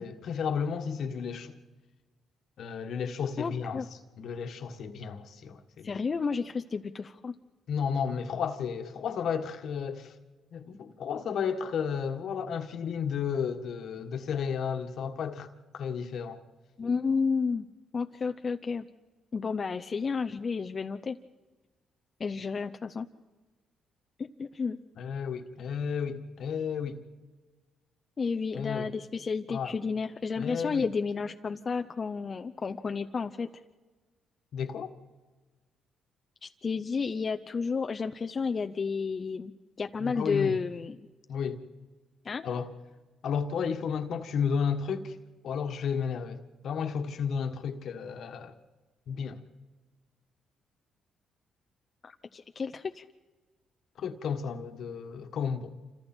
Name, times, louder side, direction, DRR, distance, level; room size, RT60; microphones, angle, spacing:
voice 1, 0.0-1.6 2.6-3.8 4.2-6.0 7.7-10.1 10.5-16.4 25.0-27.0 28.5-28.9 29.5-29.7 30.4-30.8 34.5-34.9 40.0-40.6 41.3-41.6 42.4-42.7 43.2-45.2 45.4-48.5 49.1-49.4 54.0-55.7, left 6 dB, 65° left, 1.7 m, -33 dB
voice 2, 3.4-3.9 5.8-7.3 16.8-17.7 17.9-18.9 19.3-21.2 22.2-23.1 24.2-24.8 28.2-33.5 36.4-39.5 39.8-41.1 42.2-42.4 52.0-53.1, left 5 dB, 40° left, 0.7 m, -31 dB
27.5 x 26.0 x 4.5 m
cardioid pair, 90°, 0 cm